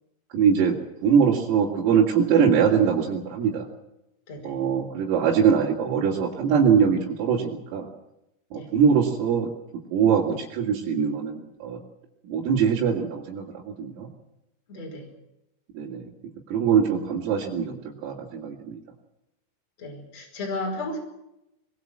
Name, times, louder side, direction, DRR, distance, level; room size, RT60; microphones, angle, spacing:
voice 1, 0.3-0.8 1.0-3.7 4.4-7.9 8.5-9.5 9.9-11.8 12.2-14.1 15.7-16.1 16.5-18.8, right 7 dB, 80° right, -4 dB, 5.1 m, -22 dB
voice 2, 4.3-4.6 8.5-8.7 14.7-15.1 19.8-21.0, left 2 dB, 30° left, 0 dB, 6.2 m, -33 dB
23.0 x 20.5 x 7.6 m, 0.87 s
omnidirectional pair, 5.9 m